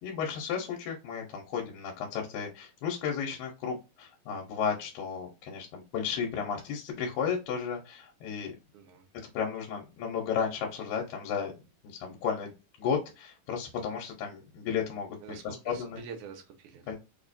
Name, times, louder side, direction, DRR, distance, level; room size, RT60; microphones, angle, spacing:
voice 1, 0.0-8.5 9.3-11.5 11.8-12.5 12.8-15.2 15.4-16.0 16.9-17.0, left 7 dB, 85° left, 1 dB, 2.6 m, -33 dB
voice 2, 15.2-17.0, right 6 dB, 70° right, 4 dB, 2.2 m, -46 dB
5.5 x 2.4 x 2.6 m, 0.27 s
omnidirectional pair, 4.0 m